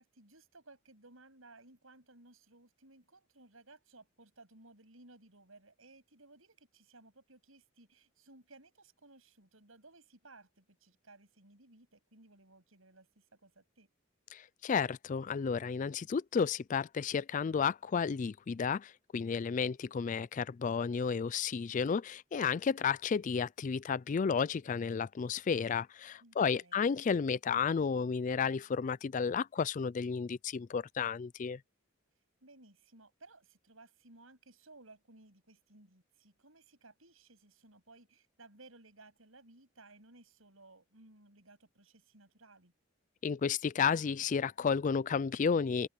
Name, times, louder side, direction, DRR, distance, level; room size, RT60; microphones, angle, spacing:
voice 1, 0.0-13.9 26.2-26.9 32.4-42.7, right 2 dB, 90° right, 8.0 m, -59 dB
voice 2, 14.3-31.6 43.2-45.9, left 6 dB, 40° left, 0.3 m, -32 dB
open air
head